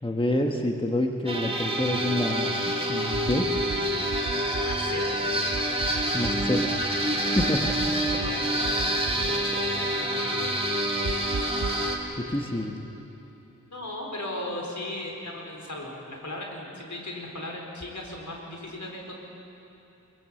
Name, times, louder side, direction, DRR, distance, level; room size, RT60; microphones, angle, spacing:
voice 1, 0.0-3.5 6.1-6.8 7.3-7.7 12.2-12.7, left 1 dB, 15° left, 3 dB, 1.4 m, -27 dB
sound 1, 1.3-12.0, right 1 dB, 20° right, 2.9 m, -27 dB
sound 2, 3.1-3.8 4.1-4.8 5.5-6.5 7.4-8.3 8.6-9.3 11.0-11.8, right 6 dB, 80° right, 0.9 m, -34 dB
voice 2, 4.6-5.2 8.1-11.0 12.5-12.6 13.7-19.1, left 1 dB, 65° left, 0 dB, 4.6 m, -38 dB
22.5 x 22.0 x 7.8 m, 3.0 s
wide cardioid pair, 75°, 32 cm